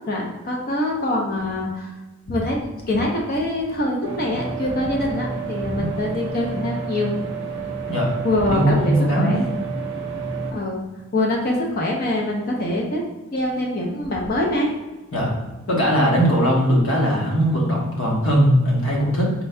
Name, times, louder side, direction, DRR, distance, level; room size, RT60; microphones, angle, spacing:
voice 1, 0.1-1.9 2.3-7.1 8.2-9.4 10.5-10.8 11.1-13.0 13.3-14.7, left 1 dB, 45° left, -1 dB, 0.6 m, -24 dB
sound 1, 4.0-10.5, right 4 dB, 55° right, 0.6 m, -30 dB
voice 2, 8.5-9.3 15.1-15.3 15.7-19.3, equal, 70° left, -3 dB, 1.2 m, -19 dB
4.4 x 3.9 x 2.2 m, 1.1 s
head